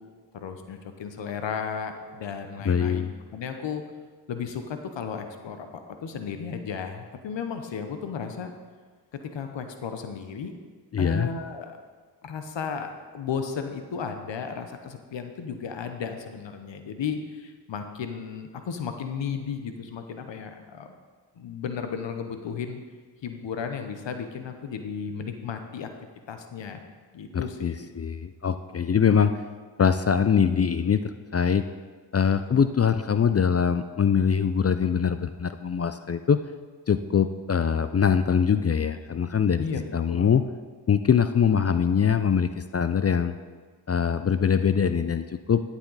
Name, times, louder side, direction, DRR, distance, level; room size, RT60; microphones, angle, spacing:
voice 1, 0.3-3.0 3.3-3.8 4.3-8.5 9.2-10.5 11.0-11.8 12.2-20.9 21.4-22.8 23.2-25.9 26.3-26.8 27.1-27.9 39.6-40.3, left 6 dB, 75° left, 7 dB, 0.9 m, -34 dB
voice 2, 2.6-3.1 10.9-11.3 27.3-29.3 29.8-31.0 31.3-31.7 32.1-36.4 36.9-40.4 40.9-43.3 43.9-45.6, left 7 dB, 35° left, 10 dB, 0.5 m, -23 dB
13.0 x 7.3 x 4.0 m, 1.5 s
cardioid pair, 45°, 44 cm